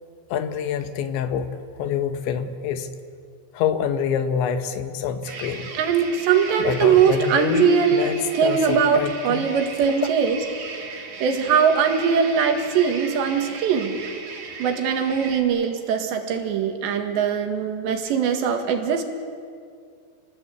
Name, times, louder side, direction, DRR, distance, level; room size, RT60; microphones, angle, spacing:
voice 1, 0.3-2.9 3.5-5.7 6.6-9.5, left 7 dB, 80° left, 8 dB, 3.4 m, -26 dB
sound 1, 5.2-15.4, right 4 dB, 50° right, 3.4 m, -37 dB
voice 2, 5.7-10.4 11.2-14.0 14.6-19.0, right 7 dB, 70° right, 5 dB, 3.9 m, -21 dB
29.5 x 20.0 x 8.4 m, 2.3 s
omnidirectional pair, 5.3 m